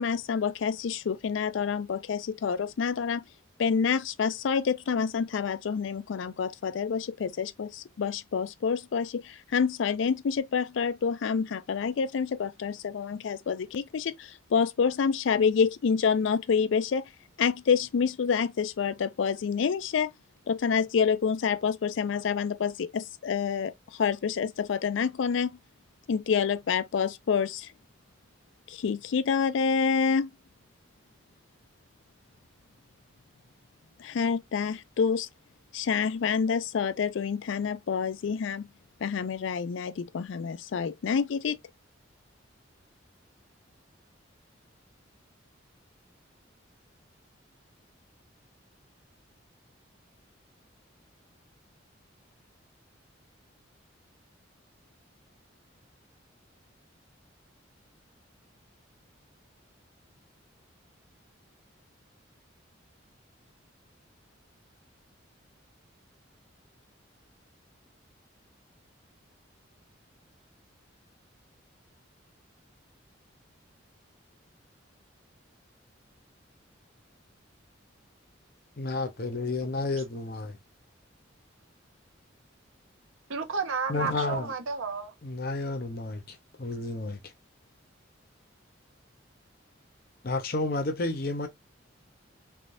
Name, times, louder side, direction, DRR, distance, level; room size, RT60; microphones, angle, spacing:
voice 1, 0.0-3.2 3.6-17.1 17.4-20.1 20.5-25.6 26.1-27.7 28.7-30.3 34.0-35.3 35.7-38.6 39.0-41.6, left 6 dB, 70° left, 0.4 m, -28 dB
voice 2, 78.8-80.6 83.9-84.5 85.2-87.2 90.2-91.5, left 2 dB, 50° left, 0.7 m, -31 dB
voice 3, 83.3-85.1, right 5 dB, 90° right, 0.7 m, -32 dB
3.4 x 2.6 x 2.6 m
head